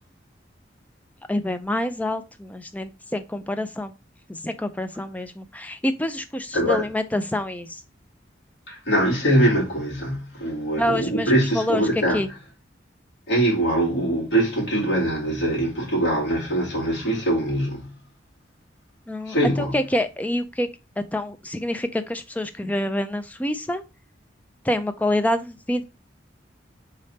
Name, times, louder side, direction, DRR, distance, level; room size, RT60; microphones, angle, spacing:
voice 1, 1.3-3.9 4.3-7.8 10.8-11.8 12.1-12.3 19.1-20.7 21.0-23.8 24.6-25.8, left 1 dB, 10° left, 0.4 m, -27 dB
voice 2, 6.5-6.9 8.7-12.2 13.3-18.0 19.2-19.8, right 1 dB, 65° left, 2.5 m, -23 dB
3.7 x 3.5 x 4.1 m
head